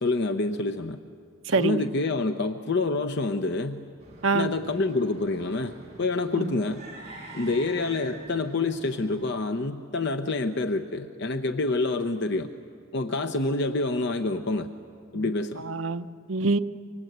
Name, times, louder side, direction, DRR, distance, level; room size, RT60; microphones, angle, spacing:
voice 1, 0.0-1.0 1.5-3.8 4.3-6.8 7.3-12.5 12.9-14.7 15.1-15.6, left 3 dB, 55° left, 7 dB, 0.8 m, -27 dB
voice 2, 1.5-1.8 4.2-4.5 6.4-6.5 15.1-15.2 15.6-16.6, right 3 dB, 75° right, 8 dB, 0.8 m, -25 dB
sound 1, 4.0-9.3, right 1 dB, 35° right, 7.0 m, -45 dB
28.5 x 24.5 x 8.0 m, 2.3 s
head